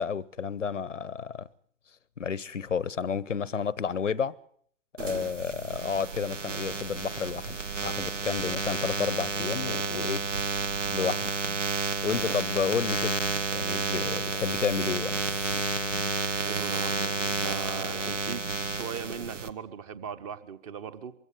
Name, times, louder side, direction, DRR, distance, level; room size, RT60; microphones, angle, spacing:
voice 1, 0.0-1.5 2.2-4.3 5.0-10.3 10.9-11.3 12.0-13.2 13.5-15.2, left 6 dB, 85° left, 0.8 m, -31 dB
sound 1, 5.0-19.5, right 4 dB, 80° right, 1.3 m, -31 dB
voice 2, 16.4-18.4 18.7-21.1, right 7 dB, 30° right, 1.0 m, -39 dB
22.5 x 16.0 x 7.3 m
figure-of-eight pair, 125°, 37 cm